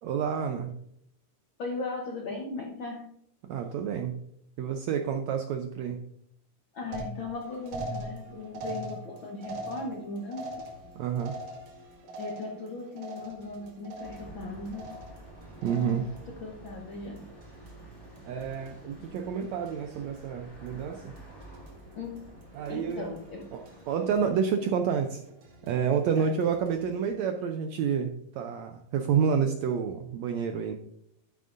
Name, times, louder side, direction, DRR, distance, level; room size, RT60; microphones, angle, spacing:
voice 1, 0.0-0.8 3.5-4.2 4.6-6.0 10.9-11.4 15.6-16.1 18.2-21.1 22.5-23.1 23.5-25.2 25.6-30.7, right 7 dB, 90° right, 5 dB, 1.5 m, -29 dB
voice 2, 1.6-3.1 6.7-10.7 12.2-15.0 15.7-17.3 21.9-22.4 22.7-23.5 24.2-24.3 26.1-26.3, left 3 dB, 85° left, 2 dB, 1.0 m, -38 dB
sound 1, 6.9-12.7 13.0-13.5 13.8-14.4 14.7-15.3 15.6-16.2, right 1 dB, 70° right, 3.4 m, -40 dB
sound 2, 7.3-27.1, right 1 dB, 50° right, 2.6 m, -55 dB
sound 3, 14.0-24.3, right 1 dB, 20° left, 2.4 m, -50 dB
12.0 x 9.2 x 2.6 m, 0.71 s
omnidirectional pair, 4.0 m